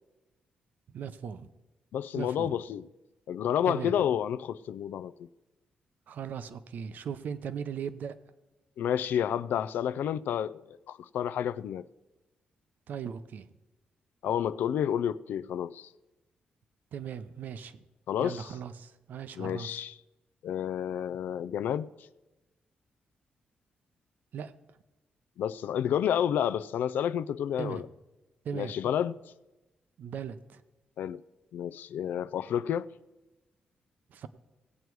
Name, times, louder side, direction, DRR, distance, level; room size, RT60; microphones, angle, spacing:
voice 1, 0.9-1.5 2.1-2.5 3.7-3.9 6.1-8.2 12.9-13.5 16.9-17.8 18.2-19.8 24.3-24.5 27.6-27.8 28.4-28.7 30.0-30.6 34.1-34.3, right 7 dB, 70° right, 0.7 m, -38 dB
voice 2, 1.9-2.8 3.3-5.3 8.8-10.6 10.9-11.9 14.2-15.9 18.1-18.5 19.4-19.9 20.4-21.9 25.4-27.8 28.5-29.2 31.0-31.2 31.5-32.9, left 9 dB, 85° left, 0.4 m, -30 dB
17.5 x 8.2 x 4.7 m
wide cardioid pair, 140°, 3 cm